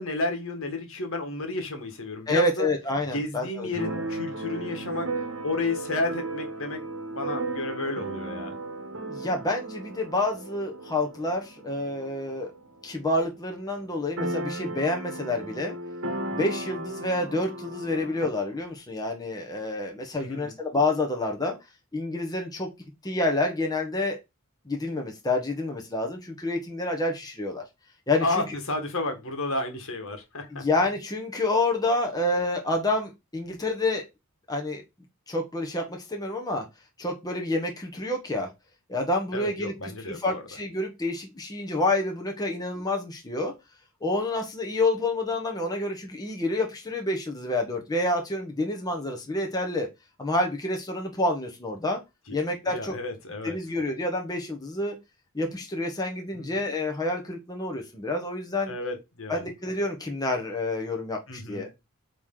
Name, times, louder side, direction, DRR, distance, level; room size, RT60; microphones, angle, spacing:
voice 1, 0.0-2.7 3.1-5.1 5.4-6.8 7.1-8.6 20.2-20.5 28.2-30.6 39.3-40.4 52.3-52.4 52.7-53.6 56.3-56.5 58.7-59.4 61.3-61.7, left 2 dB, 65° left, 1.7 m, -32 dB
voice 2, 2.3-3.7 9.1-12.5 12.8-15.8 16.3-21.5 21.9-22.7 23.0-24.2 24.6-27.6 28.1-28.5 30.5-34.0 34.5-34.8 35.3-36.7 37.0-38.5 38.9-43.5 44.0-49.9 50.2-52.0 52.3-53.0 53.4-55.0 55.3-58.7 59.3-61.7, left 2 dB, 20° left, 1.2 m, -28 dB
Keyboard (musical), 3.7-13.3 13.5-13.6 13.8-18.3, right 2 dB, 65° right, 1.2 m, -35 dB
8.2 x 3.2 x 3.9 m
head